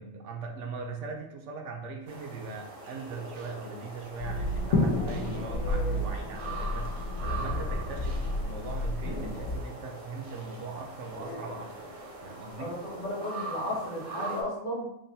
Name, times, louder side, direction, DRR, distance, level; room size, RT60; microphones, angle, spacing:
voice 1, 0.0-6.9 7.2-11.9 12.2-12.8, right 4 dB, 70° right, 2 dB, 0.9 m, -40 dB
sound 1, 2.1-14.4, right 2 dB, 45° right, 0.4 m, -42 dB
sound 2, 3.9-6.9 7.1-7.2 7.6-7.7 7.9-8.0 9.3-9.4 11.1-11.9, left 3 dB, 65° left, 1.2 m, -44 dB
sound 3, 4.2-9.6, left 1 dB, 90° left, 1.1 m, -31 dB
voice 2, 12.6-14.9, left 1 dB, 45° left, -2 dB, 0.9 m, -34 dB
3.8 x 2.0 x 3.9 m, 0.80 s
omnidirectional pair, 1.3 m